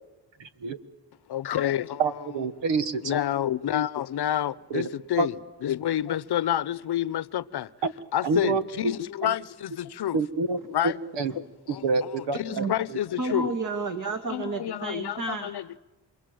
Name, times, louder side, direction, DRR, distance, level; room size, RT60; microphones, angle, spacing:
voice 1, 1.3-2.0 2.3-2.4 3.0-7.7 8.1-10.2 10.7-11.0 11.4-13.5 14.3-15.8, left 11 dB, 65° left, 0.8 m, -29 dB
voice 2, 2.0-3.2 4.7-4.9 5.2-5.3 7.8-7.9 8.2-8.9 9.2-9.3 10.1-10.6 10.8-11.3 11.8-12.6 12.9-13.0, right 4 dB, 85° right, 1.5 m, -27 dB
voice 3, 13.2-15.5, right 3 dB, 45° right, 2.3 m, -31 dB
28.5 x 22.0 x 7.8 m
cardioid pair, 70°, 42 cm